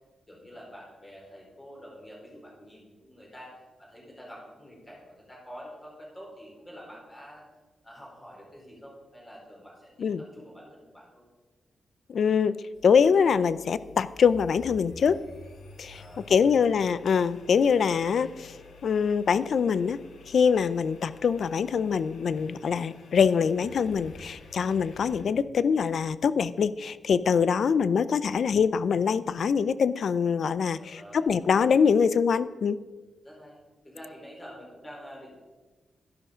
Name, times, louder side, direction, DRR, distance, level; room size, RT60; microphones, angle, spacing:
voice 1, 0.3-3.5 3.8-7.4 7.8-11.2 15.9-16.6 30.7-31.2 33.2-33.6 33.8-35.4, equal, 15° left, -2 dB, 4.3 m, -47 dB
voice 2, 12.1-12.6 12.8-15.2 15.8-16.0 16.3-18.6 18.8-20.0 20.3-32.8, left 6 dB, 55° left, 16 dB, 0.5 m, -24 dB
sound 1, 12.7-25.2, left 3 dB, 85° left, 2.1 m, -50 dB
12.5 x 11.5 x 5.0 m, 1.3 s
wide cardioid pair, 165°, 0 cm